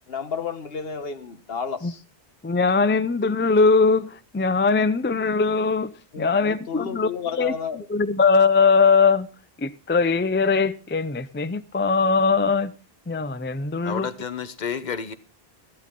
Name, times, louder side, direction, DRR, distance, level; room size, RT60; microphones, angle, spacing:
voice 1, 0.1-2.0 6.1-7.8, left 6 dB, 65° left, 1.4 m, -32 dB
voice 2, 2.4-7.1 7.4-7.5 7.9-9.3 9.6-12.7 13.1-14.1, left 4 dB, 20° left, 0.3 m, -21 dB
voice 3, 13.8-15.1, left 6 dB, 45° left, 1.0 m, -30 dB
13.5 x 12.0 x 3.7 m
omnidirectional pair, 1.1 m